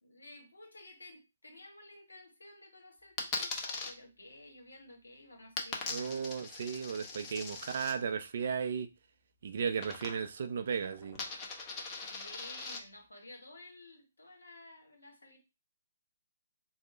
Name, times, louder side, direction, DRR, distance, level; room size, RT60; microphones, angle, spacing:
voice 1, 0.0-6.2 7.6-7.7 12.1-15.4, left 2 dB, 75° left, 1.3 m, -53 dB
Coin (dropping), 3.2-3.9 5.6-7.9 9.8-10.4 10.7-12.8, left 4 dB, 25° left, 0.7 m, -40 dB
voice 2, 5.9-8.9 9.4-11.2, right 6 dB, 50° right, 0.4 m, -35 dB
3.1 x 2.1 x 4.2 m
figure-of-eight pair, 135°, 0 cm